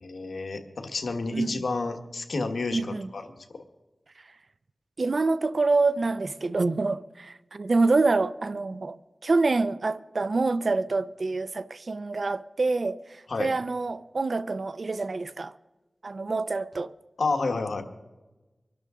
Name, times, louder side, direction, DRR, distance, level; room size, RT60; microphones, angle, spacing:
voice 1, 0.0-3.4 13.3-13.5 17.2-17.8, left 3 dB, 90° left, 1.3 m, -30 dB
voice 2, 2.7-3.1 5.0-15.5 16.0-16.9, right 3 dB, 70° right, 0.6 m, -26 dB
24.5 x 12.0 x 3.7 m
wide cardioid pair, 55°, 0 cm